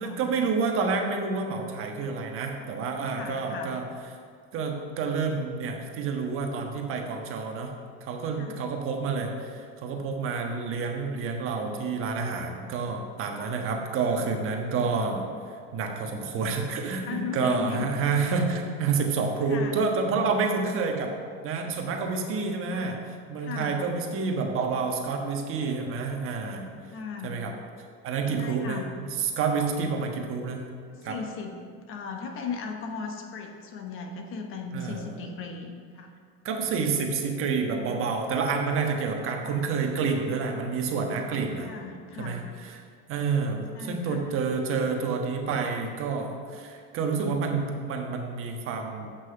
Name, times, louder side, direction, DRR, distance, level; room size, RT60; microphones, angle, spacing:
voice 1, 0.0-3.8 4.5-7.7 8.0-15.3 15.7-21.1 21.4-23.0 23.3-26.8 27.2-27.5 28.0-28.8 29.2-30.6 31.0-31.2 34.7-35.3 36.4-41.7 42.2-42.7 43.1-49.1, right 4 dB, 45° right, 3 dB, 1.3 m, -29 dB
voice 2, 3.1-3.7 8.3-8.6 17.0-17.9 19.5-19.8 22.7-23.1 23.4-23.8 26.9-27.4 28.4-28.9 30.9-36.1 41.6-42.5 43.7-44.3, left 5 dB, 45° left, 3 dB, 1.2 m, -37 dB
8.4 x 6.0 x 5.8 m, 2.1 s
supercardioid pair, 125°, 30 cm